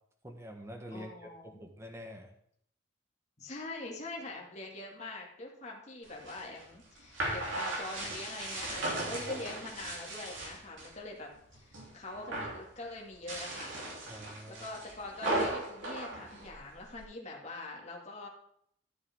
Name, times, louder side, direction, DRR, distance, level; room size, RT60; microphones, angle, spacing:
voice 1, 0.2-2.3 14.1-14.7, equal, 15° right, 3 dB, 1.3 m, -46 dB
voice 2, 0.9-1.6 3.4-13.8 14.1-18.3, left 2 dB, 35° left, -1 dB, 2.1 m, -43 dB
sound 1, 6.0-10.9 11.3-11.9 12.1-12.6 13.1-17.0, right 2 dB, 70° right, 3.4 m, -37 dB
13.0 x 6.8 x 3.6 m, 0.68 s
head